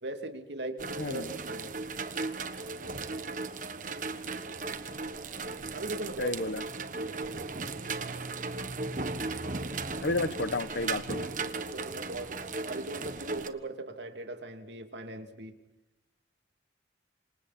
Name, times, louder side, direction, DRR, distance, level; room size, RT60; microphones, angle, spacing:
voice 1, 0.0-1.7 5.7-6.4 6.9-7.7 11.6-12.4 12.7-15.5, right 2 dB, 80° right, 5 dB, 2.8 m, -39 dB
sound 1, 0.8-13.5, right 3 dB, 45° right, 1.3 m, -36 dB
voice 2, 6.2-6.6 10.0-11.3, left 2 dB, 80° left, 15 dB, 1.0 m, -31 dB
28.0 x 26.0 x 4.3 m, 0.94 s
head